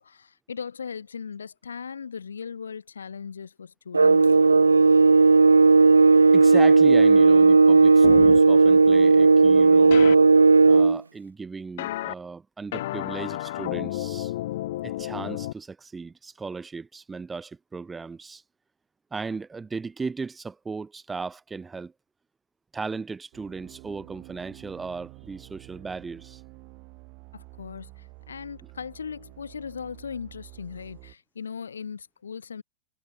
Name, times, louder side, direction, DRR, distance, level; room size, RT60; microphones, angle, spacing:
voice 1, 0.0-4.4 27.3-32.6, left 6 dB, 70° left, 1.6 m, -38 dB
sound 1, 3.9-11.0, right 4 dB, 80° right, 0.4 m, -15 dB
voice 2, 6.3-10.1 10.7-14.3 14.8-18.4 19.1-21.9 22.7-26.4, right 4 dB, 15° right, 1.4 m, -36 dB
sound 2, 8.0-8.4 9.9-10.2 11.8-12.1 12.7-15.5, left 15 dB, 55° left, 0.7 m, -31 dB
sound 3, 23.3-31.1, right 30 dB, 45° right, 2.8 m, -48 dB
figure-of-eight pair, 90°, 0 cm